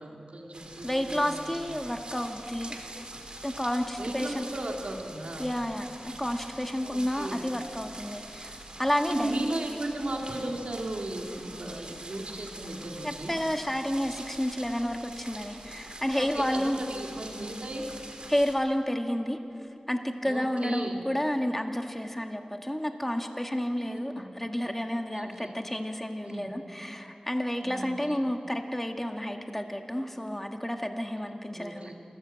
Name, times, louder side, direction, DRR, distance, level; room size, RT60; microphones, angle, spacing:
voice 1, 0.0-1.6 4.0-5.5 6.8-7.4 9.1-13.3 16.1-17.9 20.2-21.0 23.8-24.2 25.1-25.5 26.2-26.6 27.6-28.2 31.5-31.9, right 1 dB, 70° right, 1 dB, 2.8 m, -36 dB
sound 1, 0.5-18.6, right 2 dB, 45° right, 3.0 m, -44 dB
voice 2, 0.8-2.8 3.4-4.5 5.4-9.5 13.0-16.8 18.3-19.4 19.9-31.9, equal, 10° left, 4 dB, 1.9 m, -30 dB
27.5 x 14.0 x 7.7 m, 2.9 s
wide cardioid pair, 60°, 2 cm